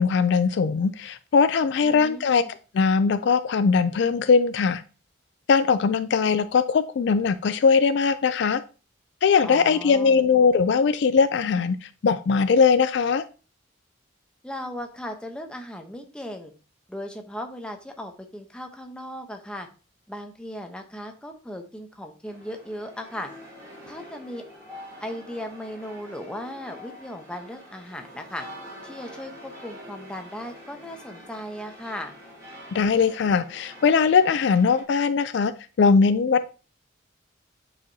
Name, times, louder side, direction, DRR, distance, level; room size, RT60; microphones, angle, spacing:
voice 1, 0.0-2.4 2.7-4.8 5.5-8.6 9.2-11.8 12.0-13.2 32.7-35.5 35.8-36.5, left 5 dB, 60° left, 13 dB, 0.3 m, -20 dB
voice 2, 1.8-2.5 9.4-10.2 14.4-16.5 16.9-19.7 20.1-23.3 23.8-24.4 25.0-28.5 28.8-32.1, left 1 dB, 5° left, 3 dB, 0.8 m, -37 dB
sound 1, 22.3-34.8, equal, 15° right, 3.1 m, -45 dB
8.5 x 4.9 x 2.7 m, 0.34 s
head